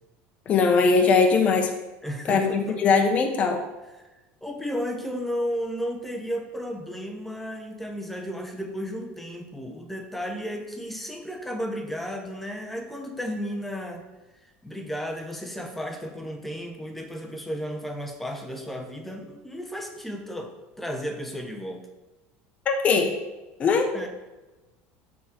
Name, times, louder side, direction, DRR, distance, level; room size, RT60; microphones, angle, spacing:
voice 1, 0.5-1.7 2.3-3.6 22.7-23.1 23.6-23.9, left 4 dB, 30° left, 4 dB, 0.9 m, -20 dB
voice 2, 2.0-2.8 4.4-14.1 14.6-21.9 23.9-24.1, equal, 5° left, 3 dB, 0.8 m, -33 dB
6.9 x 3.7 x 6.0 m, 1.1 s
cardioid pair, 155°, 5 cm